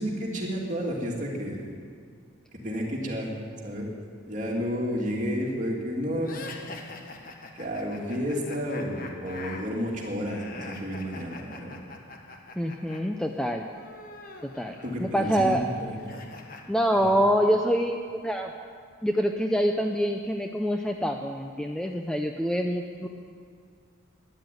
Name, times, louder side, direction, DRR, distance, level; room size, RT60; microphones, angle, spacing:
voice 1, 0.0-1.7 2.6-3.3 3.6-3.9 4.3-6.5 7.5-11.8 14.8-16.2 17.0-17.1, equal, 35° right, -2 dB, 2.7 m, -31 dB
sound 1, 6.2-13.0 13.2-16.6, left 3 dB, 40° left, 1.4 m, -44 dB
voice 2, 12.6-13.6 14.5-15.7 16.7-18.0 18.2-18.5 19.0-23.1, equal, 5° left, 3 dB, 0.5 m, -26 dB
13.0 x 11.0 x 9.3 m, 2.2 s
head